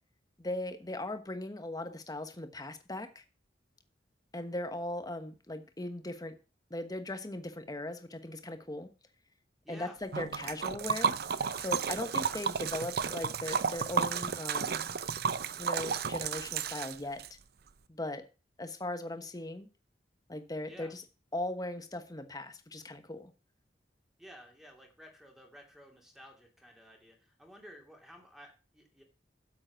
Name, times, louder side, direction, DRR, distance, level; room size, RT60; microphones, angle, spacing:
voice 1, 0.4-3.2 4.3-6.3 6.7-8.9 9.7-11.1 11.6-15.0 15.6-17.2 17.9-18.2 18.6-19.7 20.3-21.0 21.3-23.3, left 1 dB, 20° left, 1.2 m, -39 dB
voice 2, 9.6-10.0 20.7-20.9 24.2-29.0, equal, ahead, 2.6 m, -53 dB
Liquid, 10.1-17.3, right 6 dB, 60° right, 0.6 m, -33 dB
8.9 x 7.7 x 5.9 m
head